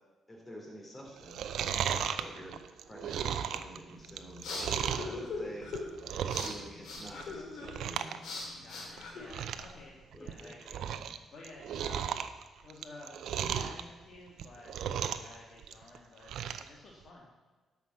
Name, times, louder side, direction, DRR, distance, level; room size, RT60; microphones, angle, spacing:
voice 1, 0.3-2.5 2.8-5.7 6.4-8.2 10.1-10.5, equal, 20° left, -2 dB, 3.7 m, -48 dB
Chewing mastication, 1.2-5.2 5.6-6.7 6.9-7.3 7.6-8.2 8.4-8.5 9.0-9.1 9.3-9.7 10.1-11.2 11.4-13.8 14.3-15.3 15.6-16.7 17.1-17.2, right 9 dB, 75° right, 0.6 m, -35 dB
sound 1, 3.9-9.8, left 3 dB, 70° left, 3.0 m, -42 dB
voice 2, 8.5-10.8 11.3-12.2 12.6-14.7 15.1-17.3, left 2 dB, 50° left, -3 dB, 1.9 m, -52 dB
11.5 x 5.8 x 7.3 m, 1.3 s
cardioid pair, 90°, 0 cm